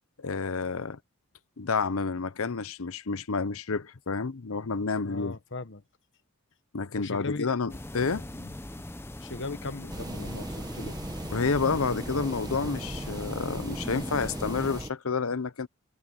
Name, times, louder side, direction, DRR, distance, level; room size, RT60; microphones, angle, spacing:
voice 1, 0.2-1.0 1.6-5.4 6.7-8.5 11.3-15.7, left 4 dB, 70° left, 0.8 m, -30 dB
voice 2, 5.0-5.8 7.0-7.5 9.2-11.0, left 3 dB, 55° left, 1.1 m, -38 dB
sound 1, 7.7-14.8, left 1 dB, 10° left, 0.7 m, -40 dB
sound 2, 9.9-14.9, right 1 dB, 20° right, 0.9 m, -38 dB
head